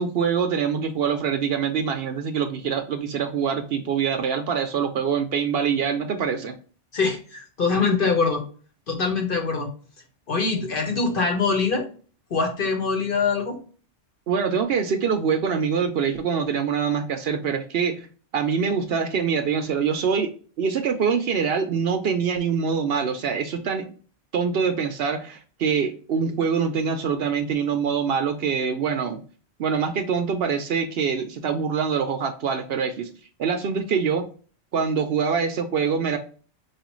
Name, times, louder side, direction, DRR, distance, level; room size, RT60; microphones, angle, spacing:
voice 1, 0.0-6.5 14.3-18.1 18.3-20.3 20.6-23.9 24.3-29.2 29.6-33.1 33.4-34.3 34.7-36.2, right 6 dB, 65° right, 7 dB, 0.7 m, -24 dB
voice 2, 6.9-8.4 8.9-9.7 10.3-11.8 12.3-13.6, left 4 dB, 50° left, 2 dB, 1.1 m, -23 dB
4.8 x 2.4 x 3.0 m, 0.40 s
omnidirectional pair, 1.2 m